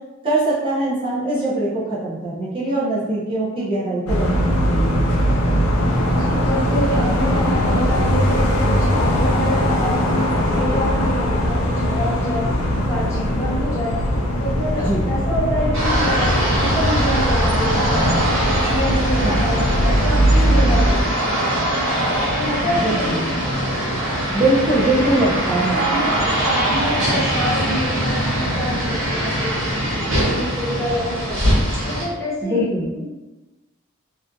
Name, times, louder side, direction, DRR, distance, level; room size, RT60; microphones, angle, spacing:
voice 1, 0.2-5.1 14.8-15.1 19.2-19.4 22.7-23.2 24.3-25.9 32.4-32.9, right 2 dB, 25° right, -8 dB, 0.6 m, -22 dB
sound 1, 4.1-21.0, equal, 80° left, 0.5 m, -20 dB
voice 2, 6.0-12.5 12.9-14.0 14.4-18.1 18.6-21.5 22.2-23.2 25.0-25.3 25.7-29.8 30.3-31.4 31.8-32.7 32.9-33.1, equal, 15° left, -8 dB, 0.6 m, -27 dB
sound 2, 15.7-32.0, right 1 dB, 65° right, 0.8 m, -22 dB
2.6 x 2.5 x 2.3 m, 1.1 s
head